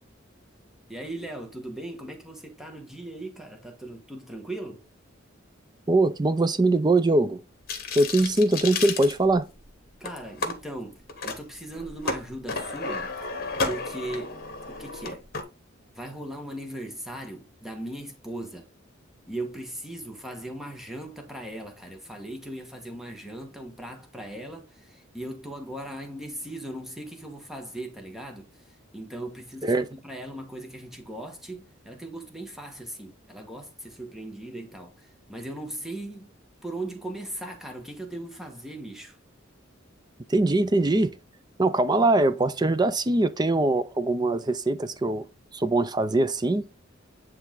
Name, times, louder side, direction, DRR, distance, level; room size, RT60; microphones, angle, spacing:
voice 1, 0.9-4.8 10.0-13.1 13.6-14.4 14.7-15.3 15.9-18.7 19.3-36.3 36.6-39.2, right 1 dB, ahead, 1.3 m, -38 dB
voice 2, 5.9-7.4 7.9-9.5 29.6-29.9 40.3-41.1 41.6-45.3 45.5-46.7, right 2 dB, 20° right, 0.5 m, -22 dB
sound 1, 7.7-9.6 10.0-10.5 11.1-11.4 11.7-15.4, left 3 dB, 50° left, 1.5 m, -32 dB
9.7 x 3.3 x 3.8 m
head